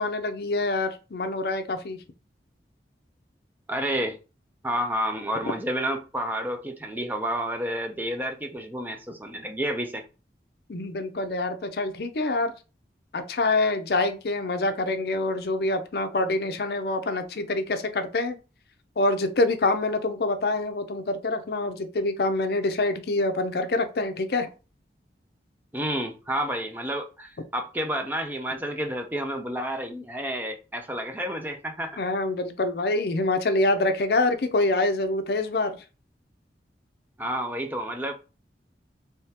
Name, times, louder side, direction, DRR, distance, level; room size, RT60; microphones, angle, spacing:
voice 1, 0.0-2.0 10.7-12.5 13.1-18.4 19.0-24.5 32.0-35.8, left 2 dB, 60° left, 0.5 m, -26 dB
voice 2, 3.7-4.2 4.6-10.0 25.7-32.0 37.2-38.1, right 1 dB, 10° right, 0.4 m, -30 dB
3.5 x 3.3 x 2.8 m
head